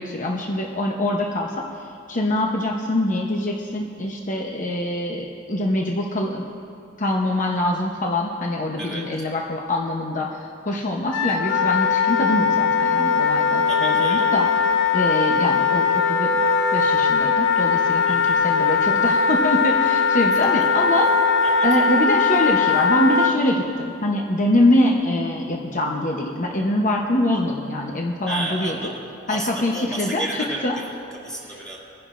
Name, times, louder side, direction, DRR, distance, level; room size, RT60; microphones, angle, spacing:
voice 1, 0.0-1.5 2.1-6.4 7.0-14.5 14.9-16.5 16.7-21.1 21.6-28.8 29.3-30.3 30.6-30.8, left 1 dB, 40° left, 0 dB, 0.9 m, -24 dB
voice 2, 8.8-9.1 13.7-14.4 18.1-18.5 20.4-20.7 21.4-21.9 28.3-31.8, right 1 dB, 5° left, -6 dB, 2.5 m, -33 dB
Wind instrument woodwind instrument, 11.1-23.3, left 5 dB, 65° left, 0.7 m, -20 dB
23.5 x 10.5 x 2.5 m, 2.5 s
head